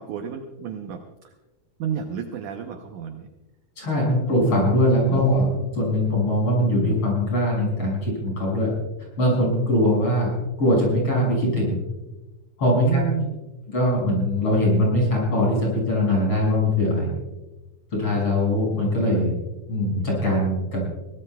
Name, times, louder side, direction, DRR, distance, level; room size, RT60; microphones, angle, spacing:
voice 1, 0.0-1.3 1.8-3.3 5.1-5.2 12.8-13.4, right 7 dB, 70° right, 5 dB, 1.9 m, -31 dB
voice 2, 3.8-5.5 5.7-8.7 9.2-11.8 12.6-13.0 13.7-17.1 17.9-19.3 19.7-20.8, left 1 dB, 35° left, -2 dB, 7.1 m, -21 dB
23.0 x 18.0 x 2.3 m, 1.1 s
omnidirectional pair, 4.4 m